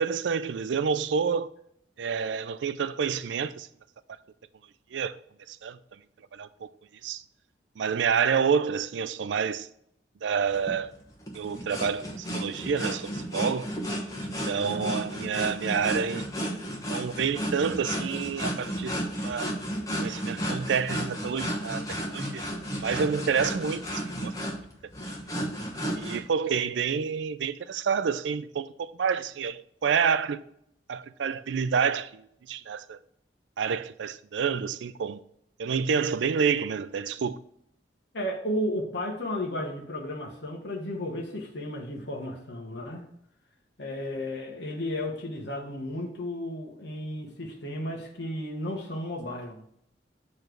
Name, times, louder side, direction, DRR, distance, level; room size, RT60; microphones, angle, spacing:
voice 1, 0.0-1.5 2.0-3.7 4.9-5.1 5.5-5.8 6.3-6.7 7.0-7.2 7.8-9.7 10.2-10.9 11.3-13.7 14.2-16.3 16.9-18.9 19.2-19.5 20.0-22.4 22.8-24.3 25.9-30.4 30.9-33.0 33.6-35.2 35.6-37.4, right 6 dB, 80° right, 0.4 m, -28 dB
sound 1, 10.5-26.2, equal, 20° left, 1.2 m, -33 dB
voice 2, 14.6-15.4 38.1-43.1 43.8-49.6, left 1 dB, 70° left, 1.1 m, -34 dB
6.9 x 3.2 x 6.1 m
head